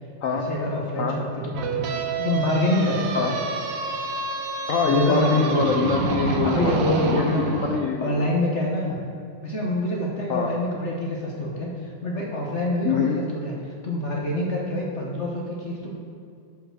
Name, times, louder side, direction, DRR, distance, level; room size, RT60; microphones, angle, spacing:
voice 1, 0.3-3.4 4.8-5.8 6.4-7.5 8.0-9.0 9.4-15.9, left 1 dB, 45° left, -2 dB, 1.1 m, -26 dB
sound 1, 1.5-7.8, right 4 dB, 70° right, 1.4 m, -28 dB
voice 2, 4.7-6.8 7.1-8.4 10.3-10.5 12.8-13.2, left 5 dB, 80° left, 1 dB, 0.7 m, -24 dB
7.1 x 5.7 x 6.4 m, 2.4 s
omnidirectional pair, 2.2 m